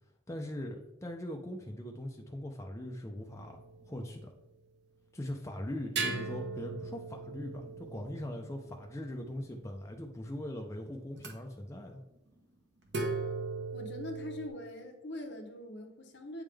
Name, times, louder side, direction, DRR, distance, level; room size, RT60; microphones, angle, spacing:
voice 1, 0.3-3.6 3.9-4.3 5.1-12.0, left 1 dB, 15° left, 2 dB, 0.5 m, -40 dB
sound 1, 3.2-4.3 6.0-9.7 11.2-11.3 12.9-14.5, right 3 dB, 60° right, 1.0 m, -39 dB
voice 2, 13.7-16.4, left 1 dB, 65° left, 3 dB, 0.9 m, -42 dB
8.4 x 3.6 x 3.4 m, 0.92 s
head